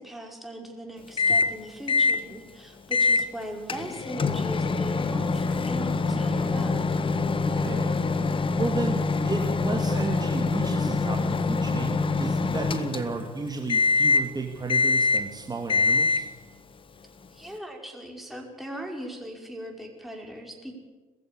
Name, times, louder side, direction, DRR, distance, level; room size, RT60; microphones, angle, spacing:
voice 1, 0.0-6.8 17.3-20.7, equal, ahead, 1 dB, 5.7 m, -39 dB
Microwave oven, 1.2-1.6 1.9-2.2 2.9-3.3 3.7-13.3 13.7-14.3 14.7-15.3 15.7-16.3, left 4 dB, 30° left, 1.6 m, -24 dB
voice 2, 7.5-8.3 8.6-16.3, right 3 dB, 25° right, 2 dB, 2.6 m, -33 dB
21.5 x 15.0 x 8.6 m, 1.3 s
hypercardioid pair, 60°, 17 cm